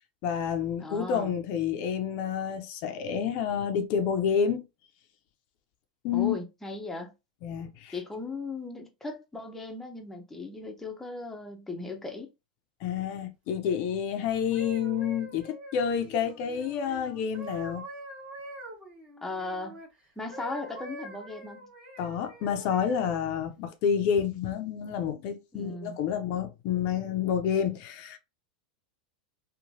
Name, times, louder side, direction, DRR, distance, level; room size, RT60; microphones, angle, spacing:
voice 1, 0.2-4.6 6.0-6.4 7.4-8.0 12.8-17.9 22.0-28.2, left 7 dB, 50° left, 0.5 m, -29 dB
voice 2, 0.8-1.3 6.1-7.1 7.9-12.3 19.2-19.8 20.2-21.7 25.5-26.0, left 3 dB, 5° left, 0.6 m, -37 dB
sound 1, 14.3-19.9 20.3-23.2 23.8-24.1, right 1 dB, 25° right, 1.2 m, -44 dB
2.9 x 2.2 x 2.6 m
hypercardioid pair, 115°, 4 cm